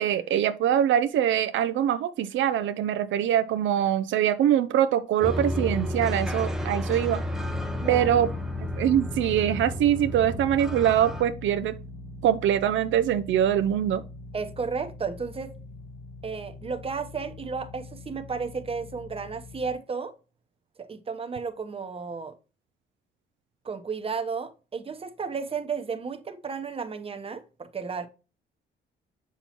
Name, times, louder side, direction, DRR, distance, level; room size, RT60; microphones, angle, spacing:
voice 1, 0.0-7.2 7.9-8.3 8.6-11.8 12.2-14.0, right 10 dB, 75° right, 0.5 m, -23 dB
sound 1, 5.2-11.2, equal, 5° right, 0.8 m, -32 dB
sound 2, 7.3-19.7, left 4 dB, 70° left, 1.6 m, -41 dB
voice 2, 7.7-8.1 14.3-15.5 16.2-20.1 20.8-22.3 23.6-28.1, right 5 dB, 30° right, 0.9 m, -33 dB
6.8 x 5.8 x 3.0 m
cardioid pair, 90°, 20 cm